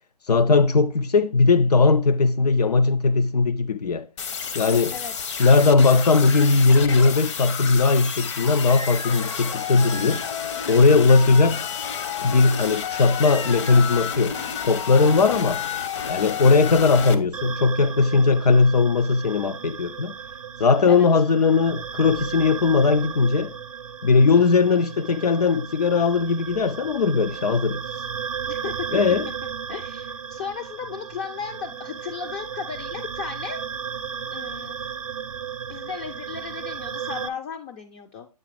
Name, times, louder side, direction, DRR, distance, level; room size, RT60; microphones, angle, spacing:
voice 1, 0.3-4.1 4.5-4.9 5.4-10.2 10.7-11.6 12.2-14.4 14.7-15.6 16.1-20.1 20.6-23.5 24.0-27.8 28.9-29.3, left 4 dB, 80° left, 0.6 m, -19 dB
sound 1, 4.2-17.1, left 7 dB, 50° left, 0.8 m, -30 dB
voice 2, 4.9-5.3 11.3-11.4 20.9-21.1 28.5-29.0 29.7-33.6 34.3-34.8 35.7-38.3, left 6 dB, 20° left, 0.4 m, -35 dB
sound 2, 17.3-37.3, right 7 dB, 55° right, 0.6 m, -35 dB
8.4 x 3.0 x 4.9 m
hypercardioid pair, 140°, 20 cm